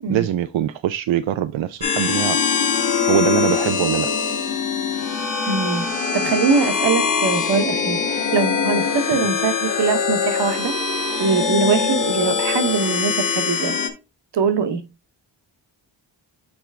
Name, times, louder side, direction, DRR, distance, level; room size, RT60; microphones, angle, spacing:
voice 1, 0.1-2.4 3.1-4.1, right 11 dB, 90° right, 0.6 m, -22 dB
sound 1, 1.8-13.9, left 6 dB, 45° left, 1.4 m, -22 dB
voice 2, 5.4-5.8 6.1-10.7 11.2-13.7 14.3-14.8, right 5 dB, 65° right, 1.2 m, -22 dB
7.1 x 4.5 x 3.4 m
wide cardioid pair, 165°, 45 cm